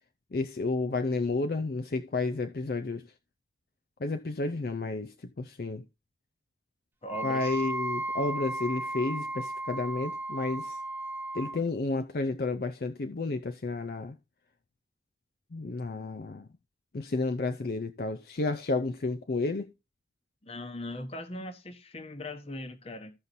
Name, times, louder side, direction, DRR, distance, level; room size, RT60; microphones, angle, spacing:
voice 1, 0.3-3.0 4.0-5.8 7.2-10.8 11.3-14.2 15.5-16.5 16.9-19.7, left 3 dB, 55° left, 0.5 m, -31 dB
voice 2, 7.0-7.6 20.4-23.1, left 1 dB, 35° left, 1.1 m, -40 dB
Wind instrument woodwind instrument, 7.1-11.6, right 2 dB, 10° right, 0.5 m, -35 dB
15.0 x 5.6 x 2.7 m
head